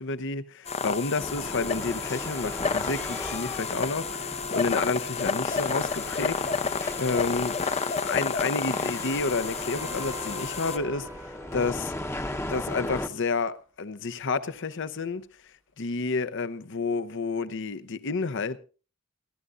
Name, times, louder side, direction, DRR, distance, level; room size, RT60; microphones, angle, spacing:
voice 1, 0.0-7.6 8.0-11.9 12.5-15.2 15.8-18.6, left 4 dB, 60° left, 0.8 m, -30 dB
sound 1, 0.7-10.8, left 5 dB, 30° left, 0.6 m, -31 dB
sound 2, 1.2-13.1, left 1 dB, 15° left, 0.9 m, -37 dB
sound 3, 6.4-12.1 16.2-16.3, right 1 dB, 10° right, 1.0 m, -47 dB
28.5 x 11.0 x 2.5 m
head